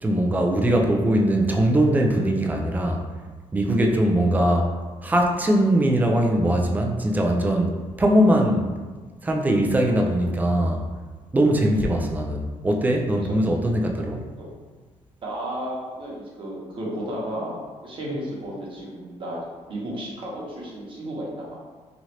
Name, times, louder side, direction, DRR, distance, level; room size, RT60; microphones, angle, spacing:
voice 1, 0.0-3.0 3.5-4.7 5.0-8.7 9.2-10.9 11.3-14.3, right 1 dB, 15° right, 1 dB, 0.4 m, -21 dB
voice 2, 11.6-11.9 13.2-13.3 14.4-14.5 15.2-19.4 19.7-21.6, right 1 dB, 45° right, -5 dB, 1.0 m, -33 dB
3.1 x 2.4 x 2.8 m, 1.4 s
cardioid pair, 115°, 12 cm